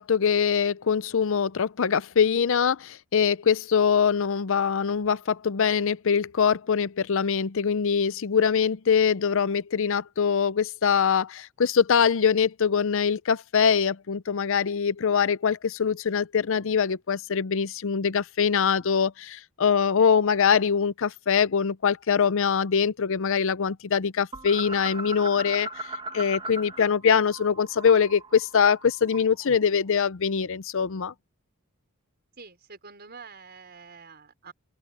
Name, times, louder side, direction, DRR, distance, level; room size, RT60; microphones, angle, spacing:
voice 1, 0.0-31.1, left 6 dB, 65° left, 0.6 m, -23 dB
sound 1, 24.3-26.9 27.2-29.5, right 2 dB, 25° right, 1.8 m, -38 dB
voice 2, 32.4-34.5, right 5 dB, 50° right, 5.2 m, -47 dB
open air
head